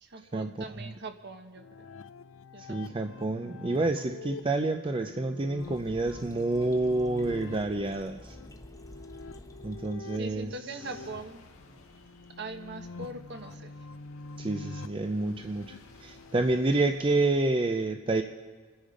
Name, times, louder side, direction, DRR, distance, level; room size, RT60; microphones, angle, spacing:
voice 1, 0.0-1.9 2.5-2.8 10.1-11.4 12.4-13.7, right 2 dB, 55° right, 6 dB, 1.3 m, -41 dB
sound 1, 1.6-16.6, left 3 dB, 70° left, 0.6 m, -46 dB
voice 2, 2.6-8.4 9.6-10.5 14.4-18.2, right 2 dB, 25° right, 6 dB, 0.5 m, -28 dB
sound 2, 5.6-10.6, left 1 dB, 15° left, 1.0 m, -49 dB
sound 3, 10.8-17.1, left 2 dB, 85° left, 1.7 m, -56 dB
27.0 x 10.5 x 5.1 m, 1.5 s
head